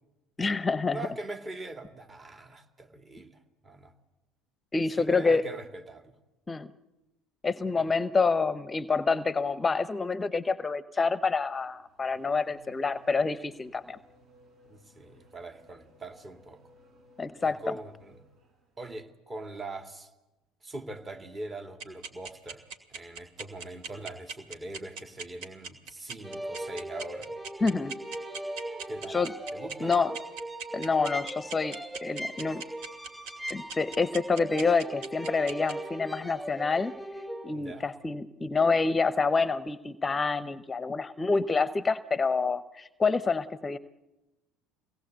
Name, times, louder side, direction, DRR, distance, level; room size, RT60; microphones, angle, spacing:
voice 1, 0.4-1.0 4.7-5.4 6.5-6.7 7.4-14.0 17.2-17.6 27.6-27.9 29.1-29.3 29.8-30.1 30.7-32.6 33.5-36.9 37.4-43.8, left 4 dB, 20° left, 15 dB, 0.8 m, -27 dB
voice 2, 0.9-3.9 5.0-6.1 7.8-7.9 14.6-16.6 17.4-18.2 18.8-20.1 20.6-22.6 22.9-27.3 28.9-29.2 29.5-29.9 37.5-37.9, right 2 dB, 30° right, 5 dB, 2.7 m, -42 dB
Race car auto racing / Accelerating revving vroom, 11.6-18.9, equal, 50° right, 5.8 m, -60 dB
sound 1, 21.8-35.7, right 5 dB, 65° right, 2.6 m, -39 dB
sound 2, 26.2-37.5, right 1 dB, 5° right, 3.9 m, -39 dB
25.0 x 18.5 x 8.0 m, 1.0 s
hypercardioid pair, 70°, 0 cm